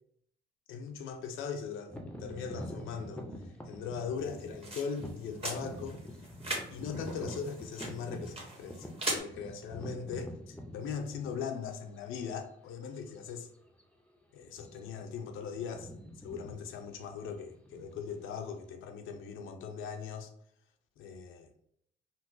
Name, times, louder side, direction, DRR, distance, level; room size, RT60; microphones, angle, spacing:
voice 1, 0.7-6.0 6.7-13.5 14.3-15.9 16.2-20.3 21.0-21.5, left 6 dB, 85° left, 0.5 m, -40 dB
sound 1, 1.9-11.7 12.3-12.4 13.1-13.3 13.6-13.8 14.5-15.0 15.3-18.7, equal, 5° left, 0.5 m, -45 dB
sound 2, 4.2-9.2, right 1 dB, 30° right, 1.1 m, -40 dB
3.7 x 2.2 x 2.6 m
cardioid pair, 90°, 20 cm